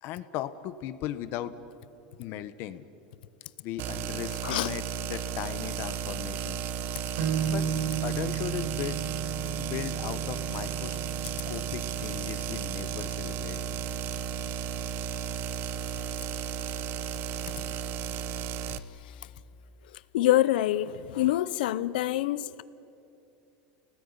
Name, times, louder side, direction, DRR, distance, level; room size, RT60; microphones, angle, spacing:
voice 1, 0.0-1.5 2.2-2.8 3.6-6.6 7.5-7.7 8.0-9.0 9.6-11.0 11.5-13.6 20.2-20.4, left 12 dB, 50° left, 1.2 m, -37 dB
sound 1, 3.8-18.8, right 7 dB, 45° right, 1.0 m, -34 dB
sound 2, 7.2-14.7, right 8 dB, 85° right, 4.6 m, -35 dB
voice 2, 20.1-22.6, left 14 dB, 90° left, 0.8 m, -26 dB
30.0 x 19.0 x 9.9 m
supercardioid pair, 150°, 5 cm